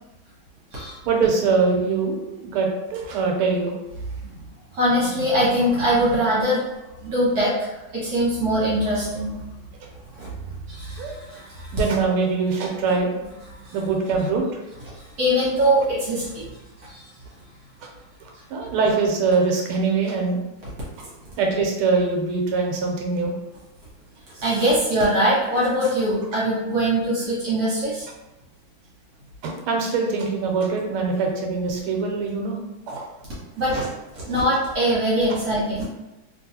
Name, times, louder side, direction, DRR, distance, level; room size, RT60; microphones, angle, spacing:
voice 1, 1.1-3.7 11.0-11.2 11.7-13.1 13.7-14.6 17.8-17.9 18.5-20.4 21.4-23.3 29.4-32.6 32.9-33.1, right 4 dB, 90° right, 1 dB, 1.6 m, -23 dB
voice 2, 4.7-6.6 7.0-9.3 10.2-10.3 10.7-11.8 13.6-13.7 14.9-16.4 16.8-17.0 24.4-28.1 33.6-35.8, equal, 50° right, -7 dB, 1.4 m, -22 dB
3.1 x 2.9 x 2.8 m, 1.0 s
omnidirectional pair, 2.3 m